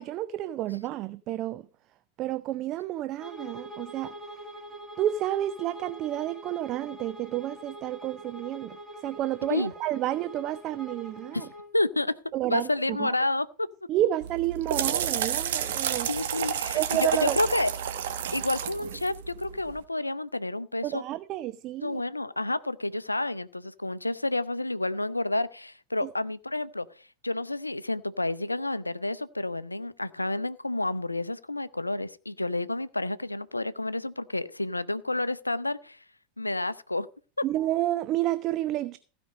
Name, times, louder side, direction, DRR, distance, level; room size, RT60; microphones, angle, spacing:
voice 1, 0.0-1.7 2.2-4.1 5.0-8.8 9.0-11.5 12.3-13.1 13.9-16.1 16.7-17.4 20.8-22.0 26.0-26.1 37.4-39.0, right 13 dB, 40° right, 0.5 m, -30 dB
Bowed string instrument, 3.2-11.7, right 1 dB, 5° right, 4.3 m, -44 dB
voice 2, 11.7-12.1 12.5-13.7 16.1-17.7 18.3-21.0 21.8-26.9 27.2-36.0 36.4-37.1, left 2 dB, 85° left, 0.5 m, -30 dB
sound 1, 14.2-19.8, right 9 dB, 60° right, 1.2 m, -31 dB
15.5 x 5.2 x 6.3 m
figure-of-eight pair, 85°, 0 cm